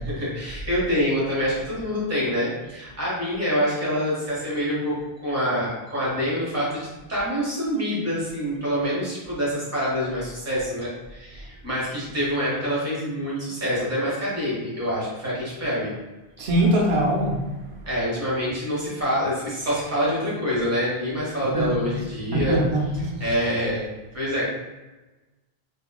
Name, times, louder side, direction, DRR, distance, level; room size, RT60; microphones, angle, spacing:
voice 1, 0.0-15.9 17.9-22.6 22.9-23.9 24.1-24.5, equal, 15° right, -7 dB, 1.0 m, -26 dB
voice 2, 16.4-17.4 21.5-21.8 22.3-23.2, right 1 dB, 85° right, -1 dB, 0.9 m, -22 dB
2.9 x 2.7 x 2.3 m, 1.1 s
omnidirectional pair, 1.0 m